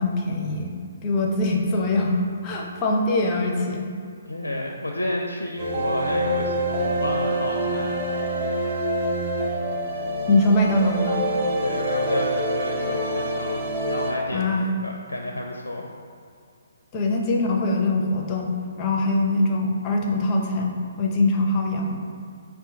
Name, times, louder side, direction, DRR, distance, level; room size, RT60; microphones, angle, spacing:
voice 1, 0.0-3.9 10.3-11.3 14.3-14.7 16.9-22.0, left 2 dB, 25° left, 0 dB, 0.5 m, -23 dB
voice 2, 4.3-8.0 11.6-15.9, left 1 dB, 80° left, 1 dB, 0.4 m, -30 dB
sound 1, 5.6-14.1, right 1 dB, 30° right, 0.7 m, -26 dB
5.2 x 2.4 x 3.6 m, 2.3 s
figure-of-eight pair, 135°, 0 cm